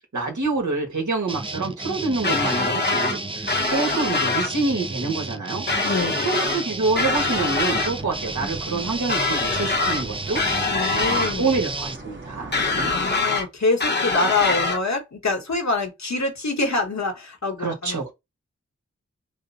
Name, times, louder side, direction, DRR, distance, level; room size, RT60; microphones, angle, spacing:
voice 1, 0.1-10.4 10.9-12.9 17.6-18.1, right 3 dB, 80° right, 1.6 m, -27 dB
sound 1, 1.3-12.0, right 3 dB, 20° right, 0.4 m, -32 dB
sound 2, 2.2-3.2 3.5-4.5 5.7-6.6 6.9-7.9 9.1-10.0 10.3-11.3 12.5-13.5 13.8-14.8, left 3 dB, 35° left, 0.8 m, -24 dB
voice 2, 5.8-6.2 10.7-11.5 12.7-18.1, left 3 dB, 65° left, 1.2 m, -25 dB
sound 3, 6.9-13.1, right 2 dB, 40° right, 1.1 m, -40 dB
6.1 x 2.2 x 2.7 m
wide cardioid pair, 60°, 29 cm